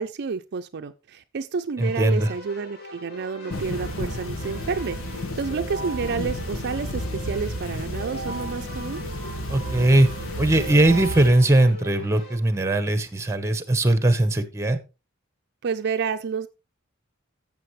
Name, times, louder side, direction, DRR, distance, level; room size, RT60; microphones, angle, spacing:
voice 1, 0.0-9.0 15.6-16.5, right 5 dB, 55° right, 0.5 m, -30 dB
Keyboard (musical), 1.8-12.4, right 2 dB, 55° left, 3.3 m, -39 dB
voice 2, 1.8-2.3 9.5-10.1 10.4-14.8, right 1 dB, 15° right, 1.0 m, -20 dB
sound 1, 3.5-11.3, left 1 dB, 85° left, 1.4 m, -32 dB
13.5 x 7.2 x 3.2 m
head